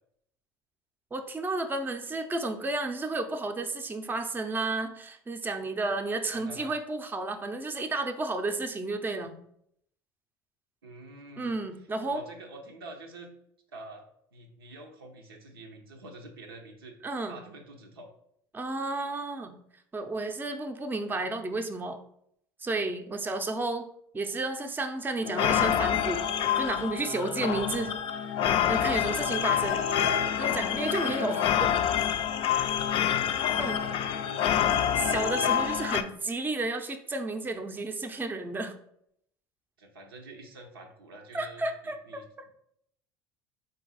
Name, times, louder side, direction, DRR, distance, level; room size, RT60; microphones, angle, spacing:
voice 1, 1.1-9.3 11.4-12.2 17.0-17.4 18.5-19.6 19.9-22.0 22.6-23.9 24.1-26.2 26.6-27.9 28.7-29.8 30.4-31.5 33.4-33.8 35.0-38.7 41.3-42.0, right 2 dB, 15° right, 6 dB, 0.5 m, -32 dB
voice 2, 6.3-6.7 10.8-11.6 12.1-13.3 13.7-14.0 14.3-17.0 17.3-18.1 27.5-27.8 28.9-30.6 31.0-31.3 33.5-34.6 39.8-42.5, right 2 dB, 90° right, 2 dB, 0.6 m, -47 dB
sound 1, 25.2-36.0, left 9 dB, 50° left, 0.4 m, -27 dB
3.9 x 2.5 x 3.9 m, 0.72 s
hypercardioid pair, 70°, 12 cm